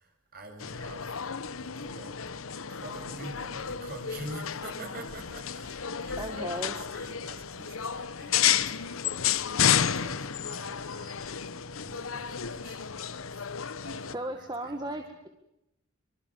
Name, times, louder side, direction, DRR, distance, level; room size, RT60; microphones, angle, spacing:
voice 1, 0.0-2.3 2.7-15.0, right 2 dB, 45° right, 4 dB, 7.1 m, -47 dB
sound 1, 0.6-14.1, left 8 dB, 90° left, 1.0 m, -31 dB
voice 2, 6.2-6.7 14.1-15.3, right 1 dB, 20° right, 5 dB, 1.8 m, -35 dB
25.0 x 24.5 x 7.3 m, 0.86 s
head